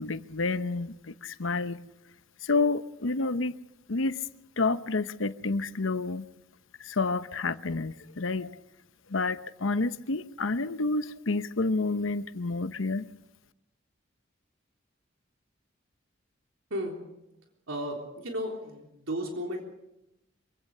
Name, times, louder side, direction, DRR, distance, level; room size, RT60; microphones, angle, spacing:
voice 1, 0.0-1.8 2.4-3.6 3.9-4.3 4.6-6.3 6.8-8.6 9.1-13.1, left 3 dB, 75° left, 0.9 m, -29 dB
voice 2, 17.7-19.6, equal, 85° right, 3.6 m, -34 dB
25.5 x 16.5 x 6.8 m
head